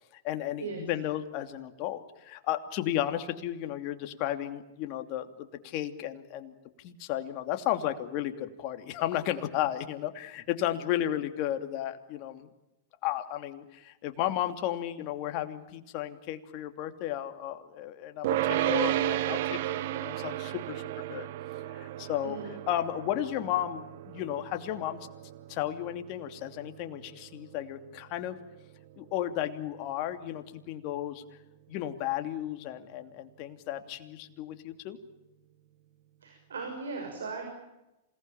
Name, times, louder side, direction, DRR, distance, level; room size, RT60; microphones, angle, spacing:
voice 1, 0.2-6.5 6.8-12.5 13.0-20.8 21.1-21.3 21.7-22.4 22.7-25.0 25.5-28.4 29.0-31.2 31.7-35.0, left 12 dB, 50° left, 8 dB, 2.8 m, -33 dB
sound 1, 18.2-29.6, right 14 dB, 60° right, 1.3 m, -34 dB
voice 2, 36.2-37.5, right 4 dB, 90° right, 4 dB, 6.3 m, -37 dB
27.5 x 19.0 x 8.9 m, 0.95 s
hypercardioid pair, 115°, 0 cm